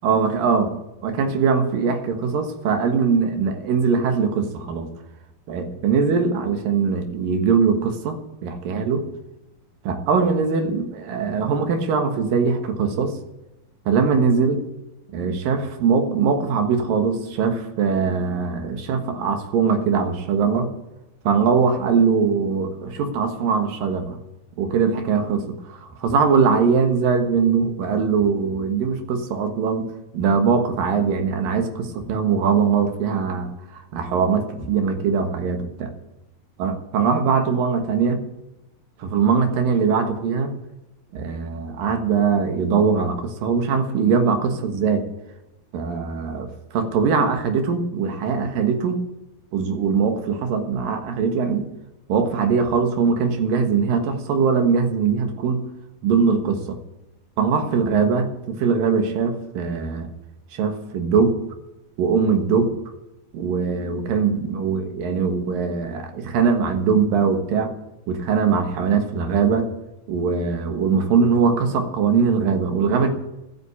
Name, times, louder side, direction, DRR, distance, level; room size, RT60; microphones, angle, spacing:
voice 1, 0.0-0.7 1.0-4.9 5.5-9.1 9.8-13.2 13.9-14.6 15.1-20.7 21.2-24.2 24.6-35.9 36.6-38.2 39.0-40.6 41.1-45.0 45.7-49.0 49.5-51.7 52.1-55.7 56.0-56.8 57.4-60.1 60.5-61.4 62.0-62.7 63.3-67.7 68.1-69.7 70.1-73.1, right 5 dB, 70° right, 6 dB, 3.1 m, -21 dB
13.0 x 8.5 x 8.4 m, 0.94 s
omnidirectional pair, 4.3 m